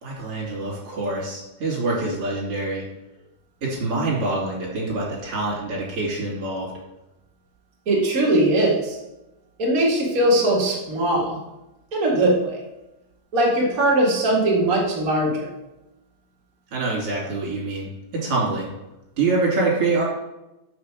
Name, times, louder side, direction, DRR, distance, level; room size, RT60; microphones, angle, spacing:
voice 1, 0.0-2.8 3.6-6.7 16.7-18.7 19.2-20.0, right 3 dB, 35° right, -5 dB, 3.2 m, -25 dB
voice 2, 7.8-9.0 9.6-11.4 11.9-12.6 13.3-15.5, right 1 dB, 85° right, -4 dB, 0.7 m, -20 dB
6.6 x 6.4 x 6.0 m, 0.94 s
omnidirectional pair, 5.2 m